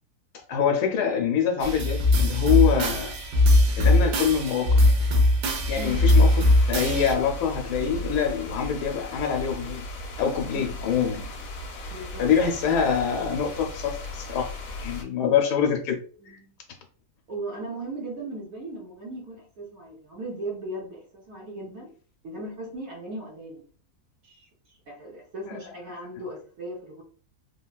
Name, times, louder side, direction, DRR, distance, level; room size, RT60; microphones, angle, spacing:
voice 1, 0.5-3.2 3.8-4.9 5.7-9.8 10.2-11.3 11.8-11.9 12.2-14.5 14.8-16.0 25.5-25.6, left 7 dB, 85° left, 1.1 m, -25 dB
sound 1, 1.6-7.1, left 1 dB, 90° right, 1.2 m, -20 dB
voice 2, 5.7-6.0 10.5-10.8 11.9-12.3 16.2-16.5 17.3-21.9 22.2-23.7 24.2-27.0, right 1 dB, 65° right, 1.2 m, -37 dB
sound 2, 5.8-15.0, left 1 dB, 65° left, 1.1 m, -36 dB
3.3 x 2.2 x 2.2 m
omnidirectional pair, 1.7 m